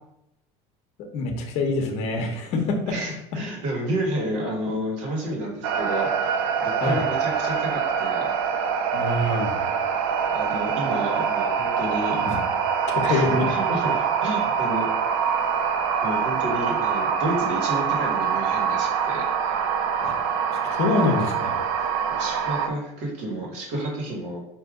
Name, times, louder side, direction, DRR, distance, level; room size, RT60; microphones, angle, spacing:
voice 1, 1.1-3.0 6.8-7.0 8.9-9.6 12.2-12.4 12.9-13.5 20.0-20.1 20.6-21.6, left 3 dB, 50° left, 4 dB, 0.9 m, -25 dB
voice 2, 2.9-6.3 6.6-8.3 10.2-12.2 13.0-14.9 16.0-19.6 22.1-24.4, right 1 dB, 55° right, -1 dB, 1.6 m, -30 dB
sound 1, 5.6-22.7, right 7 dB, 70° right, 0.5 m, -25 dB
4.9 x 2.9 x 3.6 m, 0.83 s
cardioid pair, 160°, 14 cm